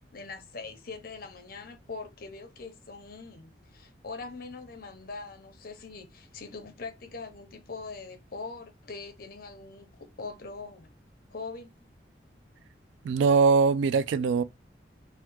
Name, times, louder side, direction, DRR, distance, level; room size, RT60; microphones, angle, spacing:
voice 1, 0.1-11.0 11.3-11.9, left 4 dB, 55° left, 0.7 m, -42 dB
voice 2, 13.0-14.4, right 5 dB, 85° right, 0.3 m, -22 dB
3.5 x 2.1 x 2.9 m
head